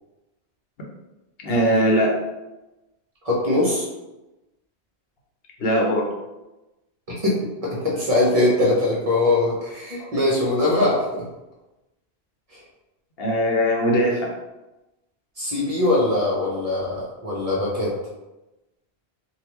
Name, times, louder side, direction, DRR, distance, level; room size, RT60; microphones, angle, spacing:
voice 1, 1.4-2.1 5.6-6.1 10.0-10.1 13.2-14.3, equal, 65° left, -1 dB, 0.8 m, -20 dB
voice 2, 3.2-3.9 7.2-11.0 12.5-12.6 15.4-17.9, left 2 dB, 40° right, -5 dB, 0.7 m, -21 dB
3.4 x 2.3 x 2.9 m, 1.0 s
omnidirectional pair, 1.1 m